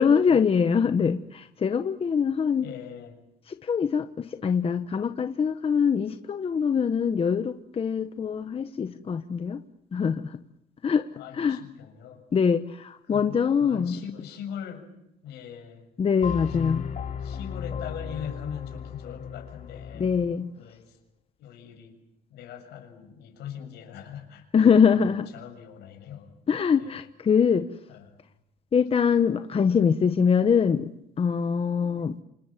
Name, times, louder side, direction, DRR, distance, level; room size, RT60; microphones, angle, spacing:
voice 1, 0.0-2.7 3.5-9.6 9.9-10.4 10.8-11.1 11.3-11.6 12.3-14.0 16.0-16.8 20.0-20.5 24.5-25.3 26.5-27.7 28.7-32.2, left 6 dB, 35° left, 9 dB, 1.2 m, -23 dB
voice 2, 2.6-3.2 11.1-12.2 13.1-14.8 15.2-15.9 16.6-17.0 17.2-20.1 20.6-21.0 21.4-22.0 22.3-26.3 26.8-27.0 27.9-28.2, left 8 dB, 80° left, 4 dB, 7.1 m, -41 dB
sound 1, 16.2-20.4, left 7 dB, 50° left, 4.9 m, -35 dB
28.0 x 26.0 x 7.5 m, 0.82 s
cardioid pair, 110°, 17 cm